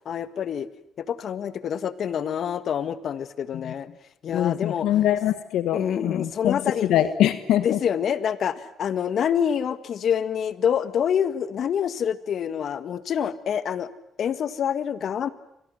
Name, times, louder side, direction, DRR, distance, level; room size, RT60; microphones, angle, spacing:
voice 1, 0.1-0.7 1.0-4.0 4.2-4.9 5.7-6.9 7.6-13.9 14.2-15.3, left 8 dB, 65° left, 13 dB, 1.7 m, -26 dB
voice 2, 4.3-6.6 6.9-7.8, left 12 dB, 85° left, 12 dB, 1.3 m, -23 dB
30.0 x 25.5 x 7.8 m, 0.77 s
cardioid pair, 90°, 0 cm